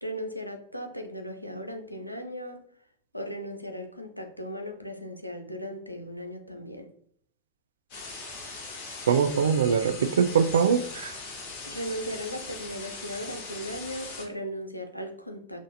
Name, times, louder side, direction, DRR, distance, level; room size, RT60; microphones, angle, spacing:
voice 1, 0.0-2.7 3.1-6.9 11.7-15.6, equal, 90° left, 5 dB, 0.5 m, -37 dB
sound 1, 7.9-14.3, left 3 dB, 45° left, 1.2 m, -40 dB
voice 2, 9.1-11.1, right 7 dB, 65° right, 10 dB, 0.3 m, -23 dB
5.9 x 2.5 x 2.6 m, 0.62 s
figure-of-eight pair, 90°, 0 cm